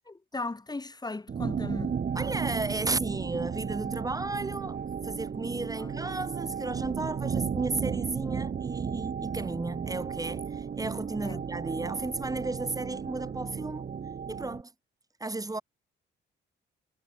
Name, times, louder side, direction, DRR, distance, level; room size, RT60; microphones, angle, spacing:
voice 1, 0.1-2.0 5.8-6.0 11.2-11.4, left 3 dB, 20° left, 6.3 m, -37 dB
sound 1, 1.3-14.6, right 7 dB, 45° right, 6.1 m, -34 dB
voice 2, 2.1-13.9 14.3-14.7 15.2-15.6, right 2 dB, 15° right, 6.2 m, -34 dB
cardioid pair, 90°, 20 cm